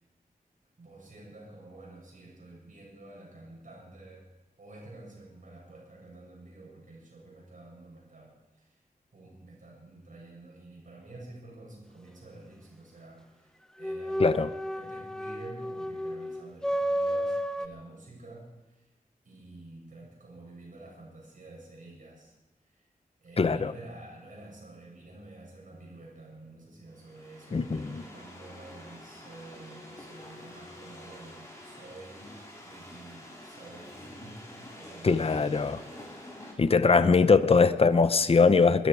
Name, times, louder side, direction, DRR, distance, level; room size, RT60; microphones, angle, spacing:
voice 1, 0.8-4.3 4.6-8.8 9.1-18.9 19.2-22.3 22.6-22.9 23.2-36.1 36.8-37.4, right 2 dB, 60° right, -3 dB, 7.5 m, -49 dB
sound 1, 13.8-17.7, equal, 5° left, 0.7 m, -32 dB
voice 2, 14.2-14.5 23.4-23.7 27.5-28.0 35.0-35.8 36.6-38.9, left 4 dB, 40° left, 13 dB, 0.7 m, -22 dB
sound 2, 26.9-36.5, left 1 dB, 20° left, 4.4 m, -47 dB
21.5 x 13.5 x 4.8 m, 1.1 s
wide cardioid pair, 105°, 15 cm